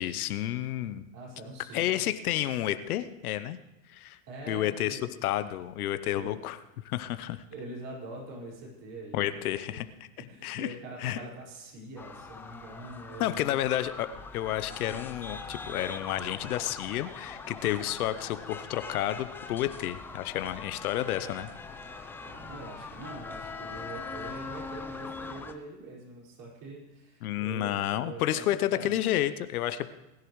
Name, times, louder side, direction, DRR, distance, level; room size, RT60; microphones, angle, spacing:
voice 1, 0.0-1.1 1.7-3.6 3.9-4.2 4.5-6.6 6.8-7.4 9.1-9.9 10.4-10.7 11.0-11.2 13.2-21.5 27.2-29.9, left 13 dB, 70° left, 12 dB, 0.9 m, -30 dB
voice 2, 1.1-2.1 4.3-5.1 6.2-6.3 7.0-9.4 9.7-9.8 10.3-13.6 14.1-14.2 22.2-29.0, right 2 dB, 45° right, -3 dB, 5.2 m, -44 dB
sound 1, 12.0-25.5, left 4 dB, 5° left, 0.3 m, -42 dB
20.5 x 10.5 x 3.2 m, 0.97 s
hypercardioid pair, 115°, 45 cm